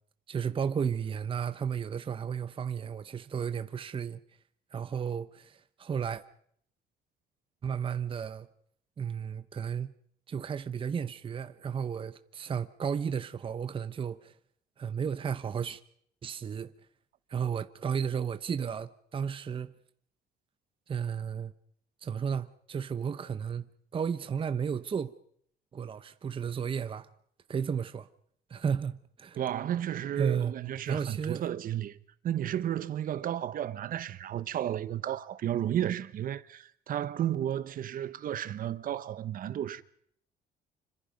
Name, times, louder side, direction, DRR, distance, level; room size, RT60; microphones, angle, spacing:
voice 1, 0.3-4.2 4.7-6.2 7.6-8.5 9.0-9.9 10.3-14.3 14.8-15.8 16.2-16.7 17.3-19.7 20.9-21.5 22.0-23.7 23.9-25.1 25.7-27.1 27.5-28.1 28.5-29.4 30.2-30.5 30.9-31.4, right 7 dB, 30° right, 0.9 m, -33 dB
voice 2, 29.4-32.0 32.2-39.8, right 11 dB, 55° right, 1.1 m, -33 dB
26.5 x 25.5 x 5.3 m
cardioid pair, 110°, 17 cm